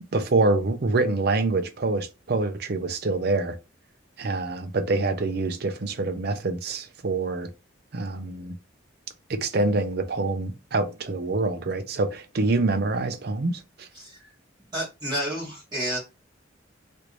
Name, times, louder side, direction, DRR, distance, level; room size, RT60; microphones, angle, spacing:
voice 1, 0.1-3.6 4.2-7.5 7.9-8.6 9.3-13.9, right 3 dB, 50° right, 0.5 m, -26 dB
voice 2, 13.9-14.3 14.7-16.0, equal, 20° right, 1.2 m, -30 dB
3.1 x 2.6 x 3.1 m
head